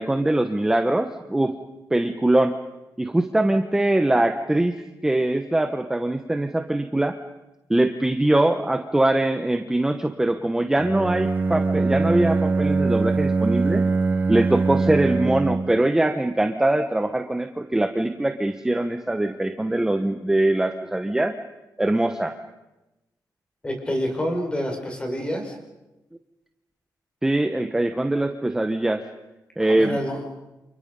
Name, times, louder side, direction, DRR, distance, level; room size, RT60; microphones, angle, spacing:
voice 1, 0.0-1.5 1.9-2.5 3.0-4.7 5.0-7.2 7.7-13.8 14.3-21.3 21.8-22.3 27.2-29.0 29.6-30.0, right 1 dB, 10° right, 7 dB, 1.1 m, -22 dB
Bowed string instrument, 10.8-15.9, right 3 dB, 25° right, 0.8 m, -22 dB
voice 2, 23.6-25.5 29.6-30.2, equal, 15° left, 2 dB, 5.4 m, -27 dB
30.0 x 28.0 x 5.4 m, 1.0 s
wide cardioid pair, 155°, 7 cm